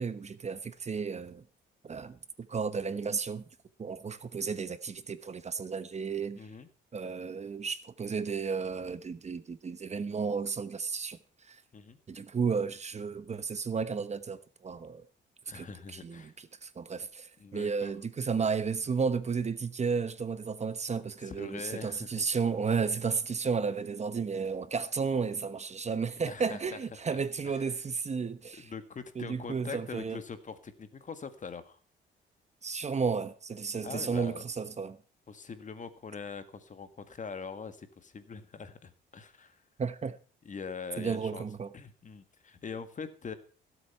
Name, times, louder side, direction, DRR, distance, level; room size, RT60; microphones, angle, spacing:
voice 1, 0.0-1.4 1.8-2.2 2.5-3.4 3.8-6.4 6.9-11.2 11.5-11.6 12.1-15.0 15.5-16.3 16.6-28.7 29.2-30.2 32.6-35.0 39.8-40.2 41.0-41.7, right 5 dB, 35° right, 1.1 m, -33 dB
voice 2, 6.4-6.7 11.7-12.0 15.5-16.3 17.4-18.0 21.2-22.3 26.2-27.2 27.4-27.8 28.6-31.8 33.8-34.4 35.3-39.6 40.4-41.5 41.7-43.3, left 5 dB, 40° left, 1.9 m, -43 dB
16.5 x 8.0 x 5.8 m
cardioid pair, 90°, 20 cm